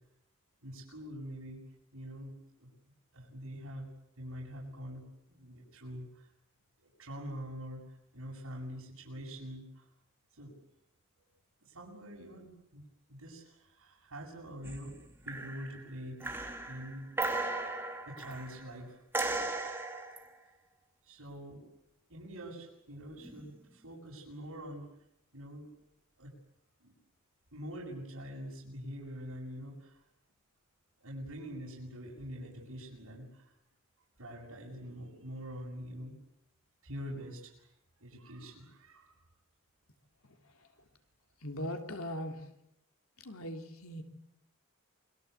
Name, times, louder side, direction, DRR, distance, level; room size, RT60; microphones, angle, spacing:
voice 1, 0.6-1.6 1.9-2.7 3.1-3.9 4.2-6.3 6.8-9.9 10.3-10.6 11.6-17.1 18.0-19.0 21.0-21.7 22.1-24.9 25.3-25.7 26.2-26.3 26.8-26.9 27.5-30.0 31.0-33.5 34.2-36.2 36.8-37.7 38.0-39.2, equal, 90° right, -5 dB, 7.7 m, -45 dB
sound 1, 14.6-15.0 15.3-15.8 16.2-18.6 19.1-20.3 23.2-23.5, right 2 dB, 10° right, 2.7 m, -36 dB
voice 2, 41.4-42.5 43.2-44.0, equal, 80° left, 5 dB, 3.4 m, -39 dB
28.5 x 23.5 x 8.4 m, 0.78 s
head